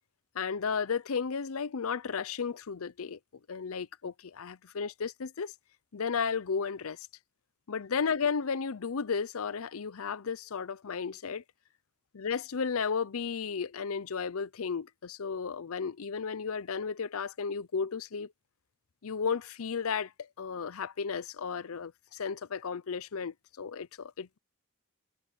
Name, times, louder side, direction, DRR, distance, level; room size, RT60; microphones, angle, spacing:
voice 1, 0.3-3.2 3.5-5.5 5.9-7.1 7.7-11.4 12.1-18.3 19.0-24.4, left 6 dB, 75° left, 0.6 m, -34 dB
head